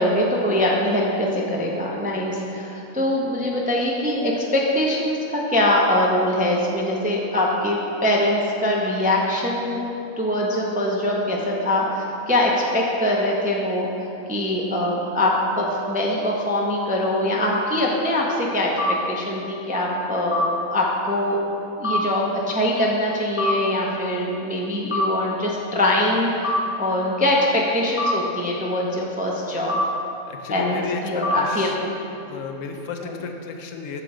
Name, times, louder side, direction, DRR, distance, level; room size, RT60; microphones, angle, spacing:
voice 1, 0.0-9.8 10.2-13.9 14.3-18.7 19.1-20.4 20.7-21.4 21.8-29.8 30.5-31.9 33.0-33.1, left 1 dB, 10° right, -2 dB, 0.4 m, -23 dB
sound 1, 18.8-18.9 20.3-20.5 21.8-22.0 23.4-23.5 24.9-25.1 26.4-26.6 28.0-28.1 29.7-29.8 31.2-31.4, left 1 dB, 10° left, 0.9 m, -22 dB
voice 2, 30.3-31.7 32.3-34.0, left 5 dB, 70° left, 4 dB, 0.9 m, -33 dB
7.9 x 6.8 x 3.8 m, 2.9 s
omnidirectional pair, 1.5 m